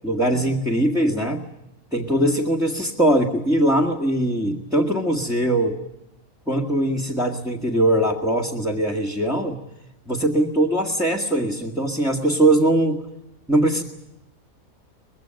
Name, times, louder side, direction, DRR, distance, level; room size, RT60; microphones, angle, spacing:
voice 1, 0.0-1.4 1.9-5.8 6.5-9.6 10.1-13.0 13.5-13.8, right 1 dB, ahead, -2 dB, 1.8 m, -21 dB
24.0 x 21.0 x 9.0 m, 0.86 s
omnidirectional pair, 1.4 m